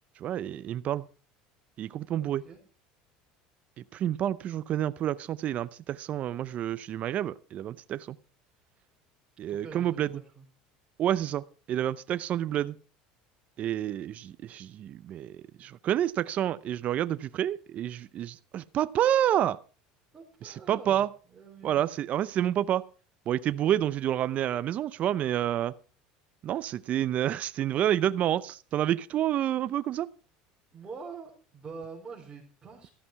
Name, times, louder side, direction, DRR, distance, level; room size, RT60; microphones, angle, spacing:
voice 1, 0.2-1.0 1.8-2.4 3.8-8.1 9.4-10.1 11.0-12.7 13.6-19.6 20.4-21.1 21.6-22.8 23.3-25.7 26.4-30.1, right 11 dB, 45° right, 0.6 m, -29 dB
voice 2, 2.2-2.6 9.5-10.4 20.1-21.1 21.3-21.9 30.7-32.9, right 5 dB, 25° right, 5.0 m, -45 dB
14.0 x 11.0 x 4.6 m
supercardioid pair, 110°, 3 cm